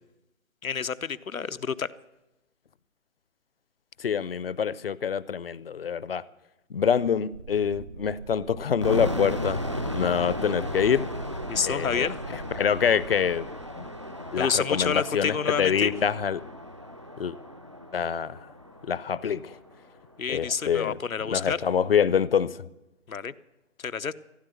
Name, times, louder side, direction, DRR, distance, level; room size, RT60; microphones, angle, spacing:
voice 1, 0.6-1.9 11.5-12.2 14.4-15.9 20.2-21.6 23.1-23.3 23.8-24.1, left 6 dB, 85° left, 13 dB, 1.0 m, -28 dB
voice 2, 4.0-6.2 6.7-9.6 9.9-11.0 11.6-13.5 13.8-13.9 14.3-16.4 17.2-17.4 17.9-18.4 18.8-19.6 20.3-21.0 21.3-22.7, left 7 dB, 45° left, 19 dB, 0.7 m, -26 dB
sound 1, 7.3-14.9, right 5 dB, 75° right, 1.3 m, -44 dB
sound 2, 8.8-19.7, left 1 dB, 25° right, 0.4 m, -35 dB
16.5 x 9.5 x 7.8 m, 0.95 s
figure-of-eight pair, 155°, 40 cm